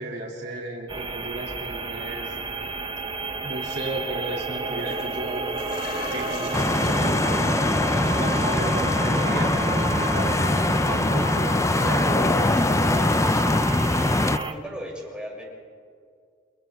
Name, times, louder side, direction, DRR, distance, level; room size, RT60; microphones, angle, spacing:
voice 1, 0.0-2.8 3.4-5.5 6.1-7.4 7.8-13.8, right 1 dB, 65° right, -2 dB, 2.8 m, -34 dB
sound 1, 0.9-14.5, right 3 dB, 25° right, 1.1 m, -31 dB
sound 2, 3.5-3.7 4.6-12.6 12.9-14.0 14.4-14.5, left 4 dB, 55° left, 2.7 m, -42 dB
sound 3, 6.5-14.4, left 2 dB, 15° left, 0.5 m, -22 dB
voice 2, 14.2-15.4, equal, 5° right, -4 dB, 6.9 m, -36 dB
29.0 x 28.5 x 3.6 m, 2.2 s
head